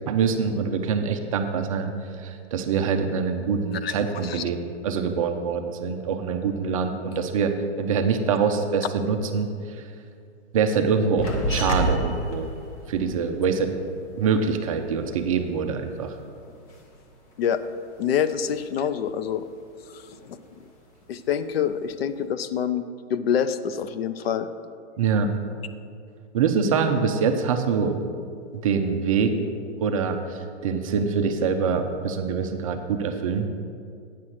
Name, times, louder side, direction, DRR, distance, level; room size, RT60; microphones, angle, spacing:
voice 1, 0.1-1.9 2.2-9.5 9.8-9.9 10.5-12.5 12.9-13.7 14.2-16.2 25.0-25.3 26.3-28.0 28.6-29.4 29.8-33.5, right 5 dB, 30° right, 6 dB, 0.5 m, -24 dB
sound 1, 11.2-16.1 16.4-17.8 18.1-19.0 19.3-20.6 21.0-21.7, equal, 30° left, 1.1 m, -32 dB
voice 2, 18.0-19.4 19.9-20.4 21.1-22.8 23.1-24.5, left 8 dB, 60° left, 12 dB, 0.6 m, -26 dB
9.0 x 5.7 x 6.3 m, 2.3 s
hypercardioid pair, 150°, 35 cm